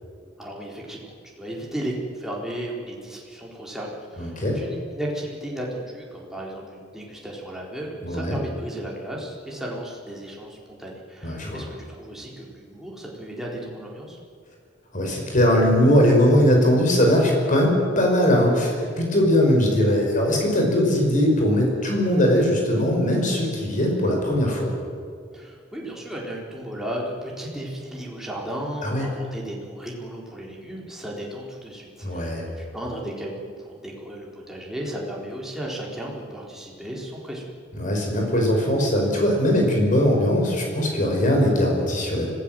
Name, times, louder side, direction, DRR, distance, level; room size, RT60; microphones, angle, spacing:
voice 1, 0.4-14.2 25.3-37.4, right 1 dB, ahead, -3 dB, 4.0 m, -35 dB
voice 2, 4.2-4.6 8.0-8.4 11.2-11.6 14.9-24.7 28.8-29.1 32.0-32.4 37.8-42.3, equal, 40° left, 0 dB, 5.7 m, -20 dB
25.0 x 17.0 x 7.7 m, 2.1 s
head